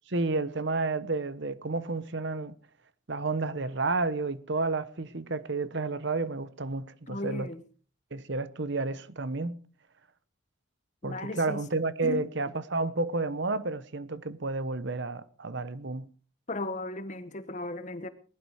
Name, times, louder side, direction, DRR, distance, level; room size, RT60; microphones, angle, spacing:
voice 1, 0.1-2.5 3.1-7.5 8.1-9.6 11.0-16.1, right 3 dB, 55° right, 1.0 m, -31 dB
voice 2, 7.1-7.6 11.0-11.6 12.0-12.2 16.5-18.1, left 1 dB, 35° left, 1.2 m, -36 dB
20.0 x 11.5 x 4.9 m
head